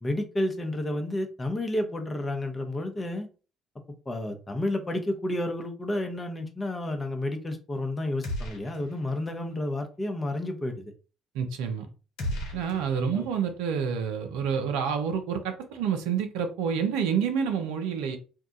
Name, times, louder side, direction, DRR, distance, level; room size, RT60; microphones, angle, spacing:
voice 1, 0.0-3.3 4.1-10.9 13.1-13.3, left 1 dB, 25° left, 0.8 m, -31 dB
sound 1, 8.2-9.1 9.4-9.5 12.2-13.5, equal, 70° left, 0.9 m, -35 dB
voice 2, 11.3-11.9 12.5-18.2, right 7 dB, 75° right, 0.5 m, -28 dB
2.7 x 2.3 x 3.8 m
hypercardioid pair, 55°, 0 cm